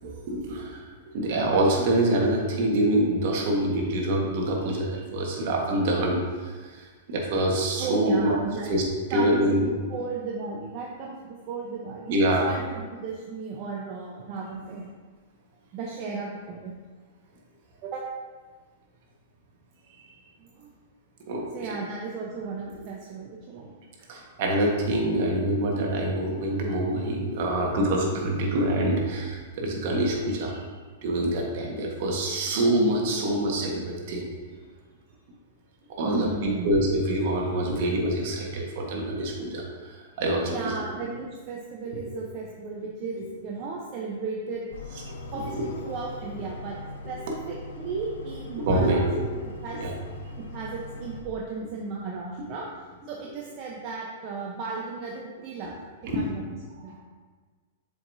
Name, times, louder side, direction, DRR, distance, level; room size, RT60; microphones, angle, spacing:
voice 1, 0.3-0.9 1.1-8.4 8.6-8.8 9.1-9.7 12.1-12.4 20.0-20.1 21.3-21.5 24.1-30.6 31.0-34.3 36.0-40.8 43.2-43.3 45.5-45.6 48.6-49.0 49.8-49.9 56.1-56.3 56.9-57.0, right 1 dB, 60° right, -1 dB, 1.4 m, -25 dB
voice 2, 7.8-8.7 9.1-12.2 12.4-14.9 15.7-16.7 17.8-18.0 20.4-20.7 21.5-23.7 24.0-24.1 36.0-36.7 40.5-44.7 45.3-46.8 47.1-49.0 49.6-49.8 50.4-52.7 53.1-55.7 56.1-56.4 56.8-57.0, right 4 dB, 40° right, -2 dB, 0.7 m, -35 dB
sound 1, 44.7-51.2, left 2 dB, 85° left, 0.6 m, -41 dB
7.1 x 4.9 x 2.7 m, 1.4 s
hypercardioid pair, 125°, 0 cm